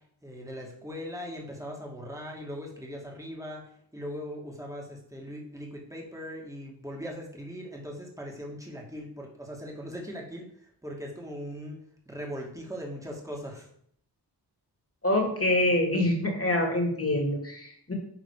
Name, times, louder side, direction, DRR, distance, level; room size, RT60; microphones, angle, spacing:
voice 1, 0.2-13.7, equal, 5° right, -1 dB, 2.2 m, -40 dB
voice 2, 15.0-17.9, left 1 dB, 30° left, 1 dB, 2.5 m, -25 dB
10.5 x 3.7 x 4.9 m, 0.67 s
cardioid pair, 50°, 43 cm